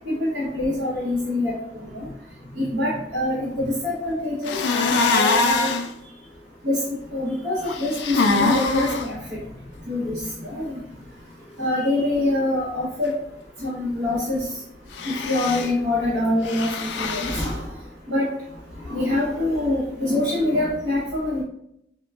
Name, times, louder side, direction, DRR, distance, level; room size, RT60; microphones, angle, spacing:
voice 1, 0.0-2.1 2.5-5.7 6.6-6.8 7.1-9.4 9.9-10.8 11.6-13.2 13.6-14.5 15.0-17.6 18.1-18.3 18.8-21.4, left 1 dB, 55° right, -9 dB, 0.9 m, -25 dB
sound 1, 4.4-5.9 7.7-9.1 14.9-15.7 16.4-17.5, left 3 dB, 70° left, 0.3 m, -23 dB
4.4 x 2.2 x 2.3 m, 0.78 s
head